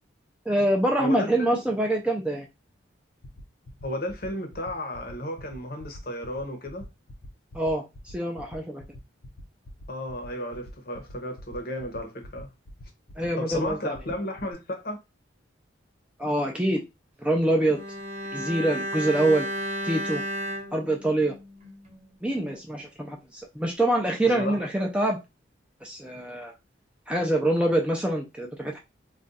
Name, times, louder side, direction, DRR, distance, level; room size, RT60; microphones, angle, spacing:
voice 1, 0.5-2.5 7.5-8.8 13.2-13.9 16.2-16.8 17.2-17.8 18.3-19.5 19.8-20.2 20.7-21.3 22.2-25.2 25.8-26.5 27.1-28.8, right 1 dB, 5° right, 0.3 m, -25 dB
voice 2, 1.0-1.6 3.8-6.9 9.9-12.5 13.4-15.0 24.2-24.6, left 1 dB, 50° left, 0.7 m, -33 dB
sound 1, 3.2-14.5, left 1 dB, 85° left, 0.7 m, -45 dB
Bowed string instrument, 17.6-22.0 22.3-22.5, equal, 35° right, 0.9 m, -33 dB
2.4 x 2.2 x 3.9 m
head